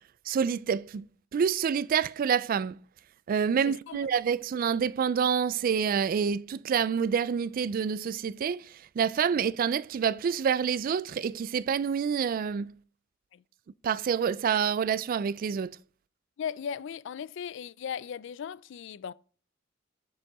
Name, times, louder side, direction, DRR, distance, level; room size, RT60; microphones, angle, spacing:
voice 1, 0.3-1.1 1.3-2.8 3.3-12.7 13.8-15.7, right 7 dB, 45° right, 0.3 m, -27 dB
voice 2, 3.6-4.0 13.3-13.4 16.4-19.1, left 7 dB, 65° left, 0.3 m, -37 dB
6.8 x 6.3 x 4.1 m
head